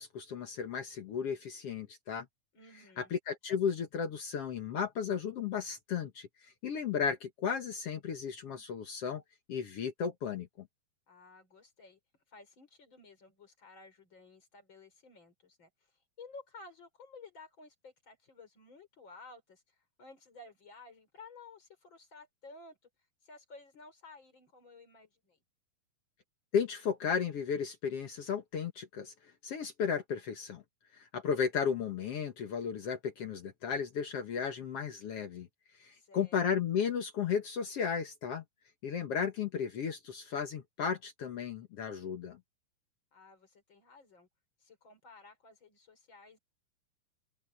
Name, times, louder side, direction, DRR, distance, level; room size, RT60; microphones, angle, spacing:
voice 1, 0.0-2.2 3.0-9.2 9.5-10.7 26.5-29.1 29.4-30.6 30.9-35.5 35.8-38.4 38.8-42.4, left 7 dB, 60° left, 1.6 m, -34 dB
voice 2, 2.5-3.1 11.1-12.0 12.3-15.7 16.2-22.8 23.2-25.4 35.9-36.4 43.1-44.3 44.6-46.4, left 3 dB, 30° left, 4.8 m, -54 dB
open air
omnidirectional pair, 4.4 m